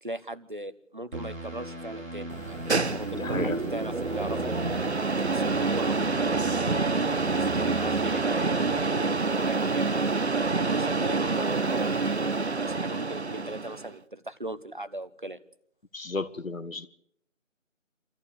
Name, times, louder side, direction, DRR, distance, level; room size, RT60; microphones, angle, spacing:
voice 1, 0.0-4.5 5.2-10.0 10.6-15.4, right 1 dB, 40° right, 13 dB, 1.0 m, -39 dB
sound 1, 1.1-8.8, right 1 dB, 80° right, 2.8 m, -38 dB
sound 2, 2.3-13.9, right 3 dB, 55° right, 0.8 m, -27 dB
voice 2, 3.2-3.6 15.9-16.9, left 3 dB, 85° left, 13 dB, 1.7 m, -33 dB
26.0 x 14.5 x 8.5 m, 0.72 s
figure-of-eight pair, 175°, 39 cm